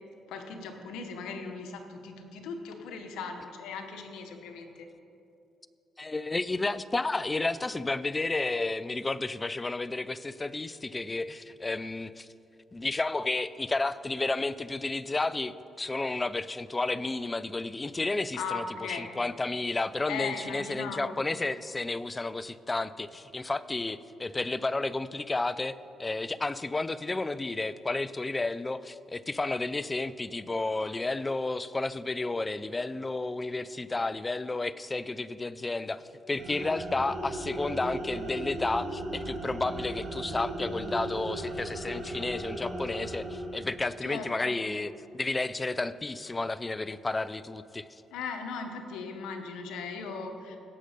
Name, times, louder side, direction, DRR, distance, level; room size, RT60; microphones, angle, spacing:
voice 1, 0.3-4.9 18.3-19.1 20.1-21.2 44.0-44.6 48.1-50.6, left 5 dB, 90° left, 4 dB, 1.1 m, -38 dB
voice 2, 6.0-12.3 12.7-25.7 26.0-47.9, left 2 dB, 20° left, 16 dB, 0.4 m, -32 dB
sound 1, 36.4-43.9, right 1 dB, 80° right, 3.0 m, -37 dB
17.0 x 6.5 x 5.1 m, 2.7 s
cardioid pair, 90°, 0 cm